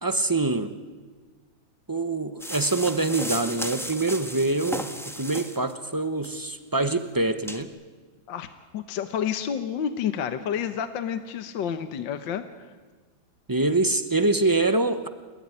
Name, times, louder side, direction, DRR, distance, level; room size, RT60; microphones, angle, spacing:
voice 1, 0.0-0.7 1.9-7.7 13.5-15.1, right 2 dB, 35° right, 9 dB, 0.3 m, -25 dB
sound 1, 2.4-5.7 6.2-6.4 6.9-7.0 7.4-7.6, equal, ahead, 1.3 m, -34 dB
voice 2, 8.7-12.7, left 8 dB, 70° left, 9 dB, 1.7 m, -30 dB
29.5 x 18.0 x 9.9 m, 1.5 s
omnidirectional pair, 2.2 m